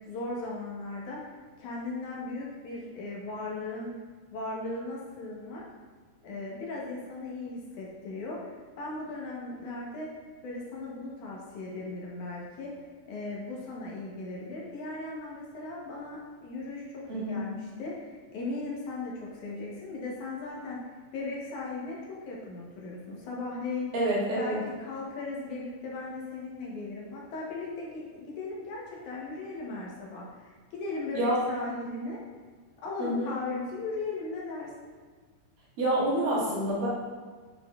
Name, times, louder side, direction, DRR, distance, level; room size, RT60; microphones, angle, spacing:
voice 1, 0.1-1.3 1.6-3.9 4.3-5.6 6.2-8.5 8.8-10.1 10.4-12.7 13.1-20.8 21.1-23.9 24.4-32.2 32.8-34.7, left 3 dB, 70° left, -4 dB, 2.3 m, -37 dB
voice 2, 17.1-17.4 23.9-24.6 31.1-31.4 33.0-33.3 35.8-36.9, right 1 dB, 80° right, -9 dB, 3.8 m, -27 dB
8.0 x 5.8 x 2.4 m, 1.5 s
omnidirectional pair, 3.9 m